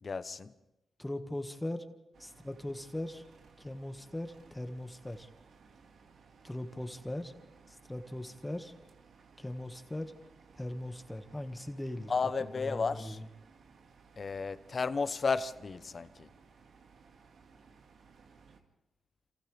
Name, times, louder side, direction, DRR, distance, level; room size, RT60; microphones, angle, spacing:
voice 1, 0.0-0.5 12.1-13.2 14.2-16.3, left 4 dB, 50° left, 0.9 m, -33 dB
voice 2, 1.0-1.8 2.2-3.2 3.6-5.3 6.4-7.3 7.7-8.7 9.4-10.2 10.5-12.1 12.4-13.3, left 1 dB, 15° left, 1.7 m, -40 dB
sound 1, 2.1-18.6, right 5 dB, 75° right, 2.0 m, -60 dB
28.0 x 27.5 x 3.4 m
cardioid pair, 60°, 0 cm